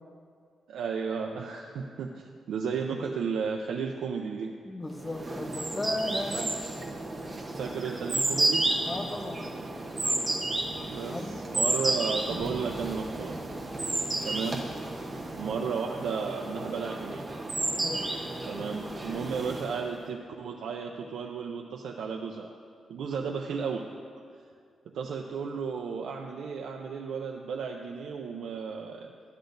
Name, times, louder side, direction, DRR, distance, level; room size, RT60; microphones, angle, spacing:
voice 1, 0.7-4.5 6.3-6.5 7.6-8.6 10.9-13.4 14.3-14.7 15.3-17.3 18.5-22.5 22.9-23.9 24.9-29.1, right 6 dB, 85° right, 1 dB, 0.5 m, -34 dB
voice 2, 4.6-6.6 7.3-7.4 8.9-9.5 11.1-11.4 17.8-18.2, left 1 dB, 15° left, 4 dB, 0.6 m, -35 dB
sound 1, 5.0-19.9, right 2 dB, 20° right, 0.9 m, -32 dB
13.0 x 9.8 x 2.6 m, 2.2 s
wide cardioid pair, 175°, 0 cm